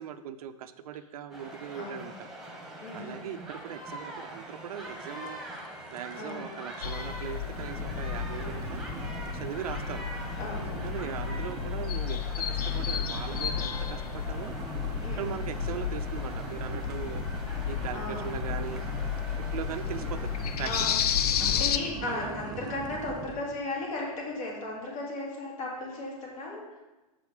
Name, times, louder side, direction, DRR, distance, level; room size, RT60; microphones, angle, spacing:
voice 1, 0.0-2.3 2.9-5.4 5.9-8.8 9.3-10.1 10.8-14.5 15.1-17.2 17.6-18.8 19.5-20.3 20.6-20.7 22.1-22.4, right 9 dB, 75° right, 11 dB, 0.5 m, -39 dB
sound 1, 1.3-20.6, right 1 dB, ahead, 1.1 m, -43 dB
voice 2, 1.8-2.1 2.8-3.2 6.2-6.5 10.4-10.9 11.3-11.5 15.0-15.4 17.9-18.3 20.6-20.9 21.4-26.8, left 2 dB, 65° left, -3 dB, 2.6 m, -36 dB
sound 2, 5.3-5.7 5.9-6.3 6.7-6.8 7.4-23.6, right 6 dB, 20° right, 0.4 m, -43 dB
sound 3, 6.8-21.8, left 8 dB, 80° left, 0.5 m, -32 dB
6.2 x 5.0 x 4.8 m, 1.1 s
hypercardioid pair, 125°, 19 cm